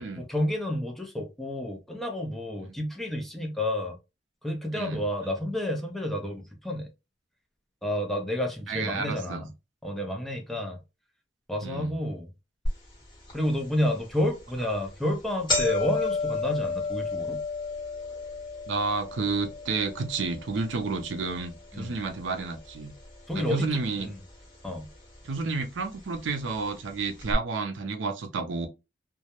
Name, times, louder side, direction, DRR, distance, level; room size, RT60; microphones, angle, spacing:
voice 1, 0.0-4.0 4.4-6.9 7.8-9.5 9.8-10.8 11.5-12.3 13.3-17.4 21.7-21.9 23.3-24.2 24.6-24.9, left 1 dB, ahead, 0.5 m, -30 dB
voice 2, 8.7-9.4 11.6-11.9 18.7-22.9 23.3-24.1 25.2-28.7, right 4 dB, 75° right, 0.5 m, -31 dB
sound 1, 12.7-12.8 13.3-13.4 14.2-14.4 14.7-14.9 15.1-23.3 23.6-24.3 25.1-25.2 26.2-26.3 26.5-26.6 27.2-27.3, left 3 dB, 25° left, 1.1 m, -33 dB
2.2 x 2.0 x 2.8 m
head